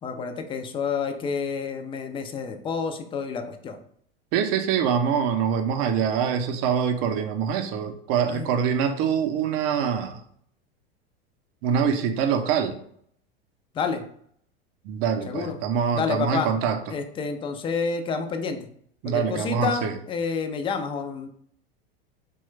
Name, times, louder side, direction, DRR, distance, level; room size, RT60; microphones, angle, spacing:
voice 1, 0.0-3.8 8.3-8.6 13.7-14.0 15.3-15.6 15.9-16.5 16.9-18.6 19.0-21.3, left 5 dB, 20° left, 6 dB, 0.3 m, -29 dB
voice 2, 4.3-10.2 11.6-12.8 14.8-16.9 19.0-20.0, right 7 dB, 50° right, 7 dB, 0.5 m, -24 dB
3.0 x 2.2 x 3.1 m, 0.64 s
hypercardioid pair, 95°, 30 cm